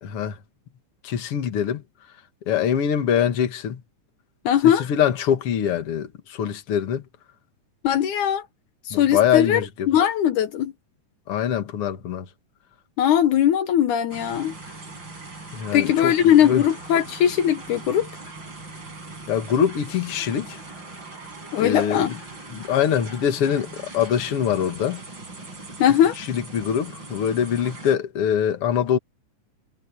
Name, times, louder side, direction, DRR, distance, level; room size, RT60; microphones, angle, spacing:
voice 1, 1.0-1.8 2.5-3.8 4.6-7.0 8.9-9.9 11.3-12.3 15.5-16.1 16.4-16.6 19.3-20.6 21.6-22.2 22.5-23.7 23.9-25.0 26.3-29.0, left 9 dB, 50° left, 2.4 m, -23 dB
voice 2, 4.5-4.9 7.8-8.5 8.9-9.6 9.9-10.7 13.0-14.5 15.7-18.1 21.5-22.2 25.8-26.2, left 10 dB, 75° left, 2.5 m, -19 dB
sound 1, 14.1-28.0, right 3 dB, 35° right, 6.5 m, -40 dB
omnidirectional pair, 3.6 m